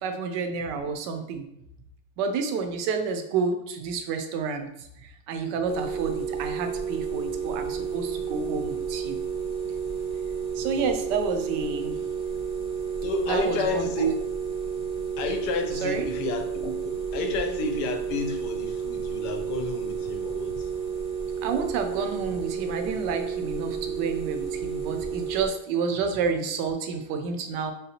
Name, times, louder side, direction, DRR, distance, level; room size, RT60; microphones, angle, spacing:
voice 1, 0.0-1.4 2.2-4.7 5.0-9.2 10.6-12.0 13.3-13.9 15.8-16.1 21.4-27.7, right 5 dB, 85° right, 6 dB, 1.2 m, -29 dB
sound 1, 5.7-25.5, right 6 dB, 35° right, 0.5 m, -31 dB
voice 2, 13.0-14.1 15.2-20.7, left 2 dB, 75° left, 6 dB, 1.1 m, -30 dB
3.9 x 3.4 x 2.8 m, 0.81 s
omnidirectional pair, 1.8 m